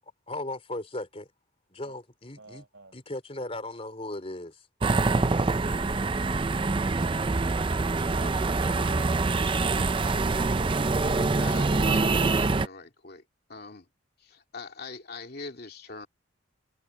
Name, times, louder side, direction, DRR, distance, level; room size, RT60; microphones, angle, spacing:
voice 1, 0.3-1.3 1.7-2.6 2.9-4.7, left 1 dB, 30° left, 3.6 m, -37 dB
voice 2, 2.4-3.0, right 3 dB, 65° right, 6.7 m, -51 dB
sound 1, 4.8-12.7, right 3 dB, 25° right, 0.4 m, -25 dB
voice 3, 11.4-13.2 13.5-13.9 14.2-16.1, left 3 dB, 50° left, 2.6 m, -42 dB
head